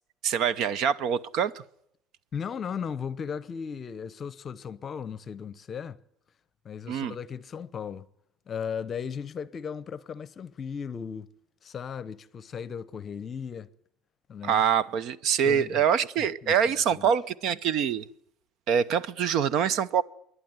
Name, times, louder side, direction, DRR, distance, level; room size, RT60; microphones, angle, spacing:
voice 1, 0.2-1.6 6.9-7.1 14.4-18.1 18.7-20.0, right 8 dB, 55° right, 0.8 m, -25 dB
voice 2, 2.3-6.0 6.6-8.1 8.5-11.3 11.6-13.7 14.3-14.6 15.4-15.8 16.4-17.1, left 7 dB, 30° left, 0.8 m, -36 dB
26.5 x 11.5 x 9.4 m
cardioid pair, 160°, 0 cm